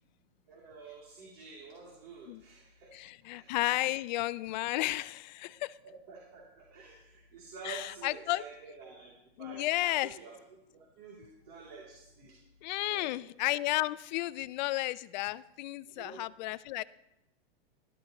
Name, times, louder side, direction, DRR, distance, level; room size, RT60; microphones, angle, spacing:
voice 1, 0.5-2.9 3.3-3.5 5.8-9.1 9.4-10.4 10.7-12.4 12.9-13.3 16.0-16.2, right 4 dB, 50° right, -3 dB, 2.9 m, -49 dB
voice 2, 2.9-5.8 7.6-8.4 9.4-10.1 12.6-16.8, left 18 dB, 45° left, 18 dB, 0.4 m, -33 dB
13.0 x 12.0 x 2.9 m, 0.89 s
hypercardioid pair, 140°, 31 cm